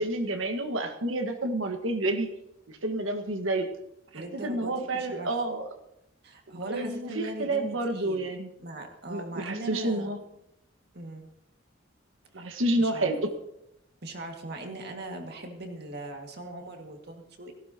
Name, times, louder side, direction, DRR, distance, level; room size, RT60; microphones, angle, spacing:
voice 1, 0.0-2.3 2.7-3.7 4.1-5.7 6.5-8.5 9.1-10.2 12.3-13.3, right 1 dB, 85° right, 5 dB, 1.6 m, -29 dB
voice 2, 4.1-5.3 6.2-8.3 8.6-10.1 10.9-11.3 12.4-13.1 14.0-17.5, right 2 dB, 55° right, 3 dB, 2.0 m, -40 dB
17.5 x 15.5 x 2.9 m, 0.81 s
head